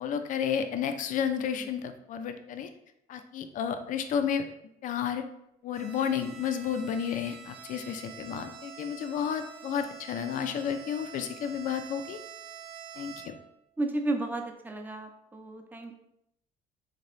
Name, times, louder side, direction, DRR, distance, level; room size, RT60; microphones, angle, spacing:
voice 1, 0.0-2.7 3.1-4.4 4.8-5.2 5.6-12.2 13.0-13.3, left 8 dB, 50° left, 8 dB, 0.4 m, -31 dB
Bowed string instrument, 5.7-13.6, right 8 dB, 60° right, 0.6 m, -47 dB
voice 2, 13.8-15.9, right 2 dB, 10° right, 3 dB, 0.5 m, -33 dB
3.9 x 2.9 x 3.1 m, 0.78 s
cardioid pair, 110°, 17 cm